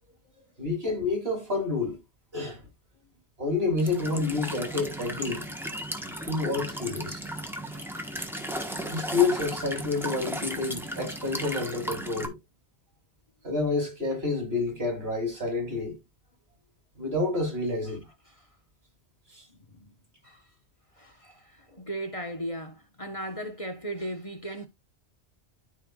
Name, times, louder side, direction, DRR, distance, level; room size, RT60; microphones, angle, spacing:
voice 1, 0.6-2.0 2.3-2.6 3.4-5.5 6.3-7.3 8.9-12.4 13.4-16.0 17.0-18.0 19.3-19.4, left 3 dB, 65° right, 3.6 m, -28 dB
Walk footsteps / Chirp tweet / Stream, 3.8-12.3, equal, ahead, 1.2 m, -35 dB
voice 2, 21.0-24.7, right 1 dB, 30° left, 1.2 m, -37 dB
13.5 x 4.5 x 2.4 m
omnidirectional pair, 1.1 m